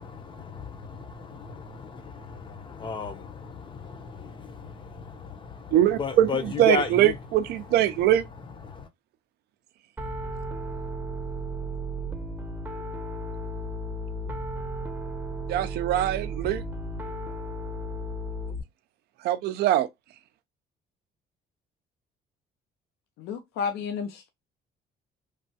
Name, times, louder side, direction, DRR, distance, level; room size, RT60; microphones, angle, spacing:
voice 1, 0.0-7.1 8.6-8.9, left 5 dB, 30° left, 0.5 m, -34 dB
voice 2, 5.7-8.3 15.5-16.6 19.2-19.9, right 12 dB, 70° right, 0.4 m, -22 dB
Piano, 10.0-18.6, right 1 dB, 10° right, 0.6 m, -34 dB
voice 3, 23.2-24.3, left 6 dB, 80° left, 0.5 m, -32 dB
3.2 x 2.2 x 2.7 m
cardioid pair, 110°, 17 cm